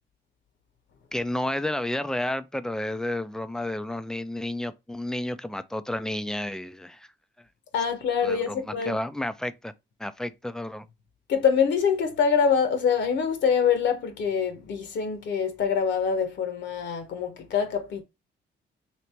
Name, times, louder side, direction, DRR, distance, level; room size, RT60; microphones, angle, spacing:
voice 1, 1.1-7.1 8.2-9.7 10.0-10.9, left 1 dB, 5° left, 0.4 m, -31 dB
voice 2, 7.7-9.0 11.3-18.0, left 6 dB, 65° left, 1.0 m, -25 dB
3.3 x 2.9 x 4.2 m
cardioid pair, 90°, 20 cm